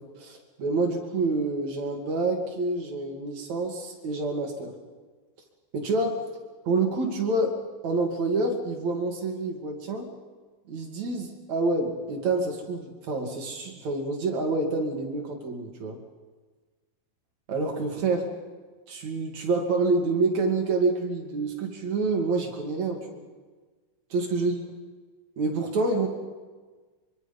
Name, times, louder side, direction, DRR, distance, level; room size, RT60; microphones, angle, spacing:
voice 1, 0.2-4.7 5.7-6.2 6.6-7.6 7.8-10.1 10.7-16.0 17.5-18.2 18.9-23.2 24.1-24.6 25.4-26.1, right 3 dB, 45° right, 2 dB, 3.0 m, -27 dB
24.5 x 23.5 x 5.4 m, 1.4 s
omnidirectional pair, 5.2 m